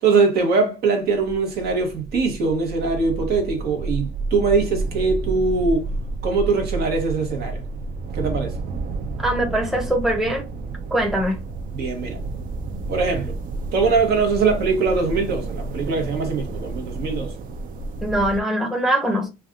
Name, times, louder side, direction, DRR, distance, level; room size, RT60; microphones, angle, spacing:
voice 1, 0.0-5.9 6.2-7.6 8.1-8.5 11.7-12.2 12.9-13.4 13.7-17.3, right 4 dB, 70° right, 1.1 m, -22 dB
sound 1, 1.1-18.4, right 3 dB, 55° right, 0.5 m, -30 dB
voice 2, 9.2-10.5 10.9-11.4 18.0-19.3, right 1 dB, ahead, 0.7 m, -22 dB
3.3 x 2.3 x 2.4 m
cardioid pair, 110°, 17 cm